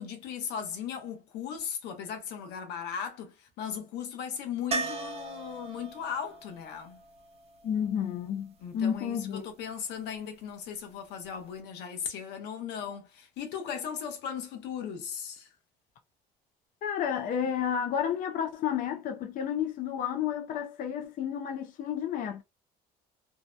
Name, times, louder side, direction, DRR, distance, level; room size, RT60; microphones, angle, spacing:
voice 1, 0.0-7.0 8.6-15.5, left 7 dB, 85° left, 0.8 m, -37 dB
sound 1, 4.7-8.6 11.2-11.3 11.6-11.7, right 3 dB, 35° right, 0.5 m, -38 dB
voice 2, 7.6-9.5 16.8-22.4, left 8 dB, 55° left, 0.4 m, -31 dB
2.7 x 2.0 x 2.3 m
cardioid pair, 110°, 17 cm